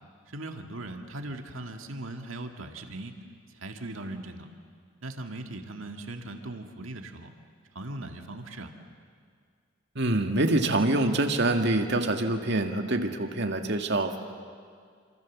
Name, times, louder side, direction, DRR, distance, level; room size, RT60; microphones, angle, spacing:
voice 1, 0.3-3.1 3.6-4.5 5.0-7.3 7.8-8.7, right 2 dB, 90° right, 5 dB, 1.9 m, -39 dB
voice 2, 10.0-14.2, right 2 dB, 60° right, 5 dB, 2.0 m, -25 dB
27.0 x 26.5 x 7.4 m, 2.1 s
head